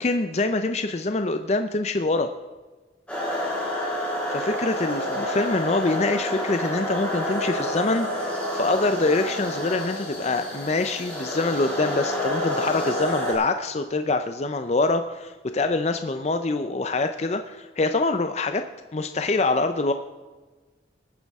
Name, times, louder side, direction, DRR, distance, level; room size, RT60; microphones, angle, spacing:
voice 1, 0.0-2.3 4.3-18.6 18.9-19.9, left 3 dB, 35° left, 8 dB, 0.5 m, -25 dB
sound 1, 3.1-13.3, equal, 5° left, 3.8 m, -29 dB
20.0 x 9.6 x 3.6 m, 1.3 s
head